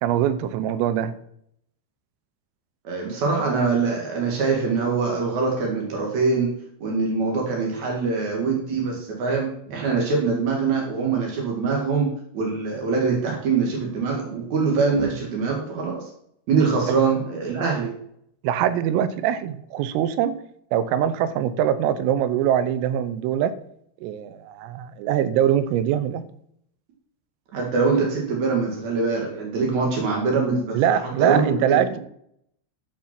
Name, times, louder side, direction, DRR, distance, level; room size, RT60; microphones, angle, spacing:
voice 1, 0.0-1.2 18.4-20.4 20.7-23.6 24.0-26.2 30.7-32.0, right 10 dB, 90° right, 13 dB, 3.4 m, -23 dB
voice 2, 2.8-6.5 6.8-12.1 12.3-16.1 16.5-17.9 27.5-31.8, right 4 dB, 55° right, -1 dB, 2.1 m, -23 dB
11.5 x 5.8 x 5.9 m, 0.70 s
omnidirectional pair, 5.8 m